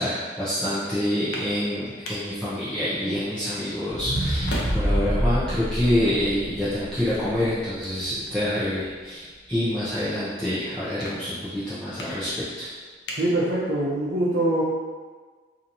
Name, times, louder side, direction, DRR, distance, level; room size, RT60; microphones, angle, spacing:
voice 1, 0.0-12.7, left 1 dB, 5° left, -14 dB, 0.8 m, -27 dB
sound 1, 1.0-14.1, left 1 dB, 70° left, 0.6 m, -42 dB
sound 2, 3.9-8.2 8.6-8.7, equal, 30° left, 1.3 m, -27 dB
voice 2, 13.2-14.6, right 1 dB, 70° right, -8 dB, 0.7 m, -24 dB
3.1 x 2.8 x 4.0 m, 1.5 s
head